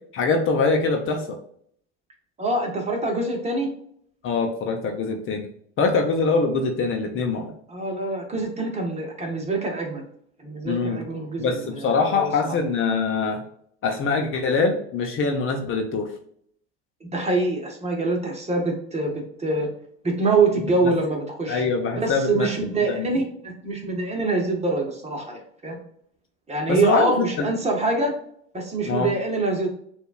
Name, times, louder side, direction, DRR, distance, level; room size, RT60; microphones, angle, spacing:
voice 1, 0.1-1.4 4.2-5.5 5.8-7.5 10.6-11.1 11.4-13.4 13.8-16.1 20.8-20.9 21.5-22.5 22.8-23.1 26.7-27.5 28.9-29.1, left 4 dB, 40° left, 3 dB, 0.9 m, -23 dB
voice 2, 2.4-3.7 7.7-10.0 10.4-12.3 17.1-19.7 20.0-21.6 21.9-25.8 26.5-28.1 28.5-29.7, right 3 dB, 20° right, 1 dB, 1.4 m, -25 dB
6.5 x 2.7 x 2.4 m, 0.65 s
hypercardioid pair, 85°, 33 cm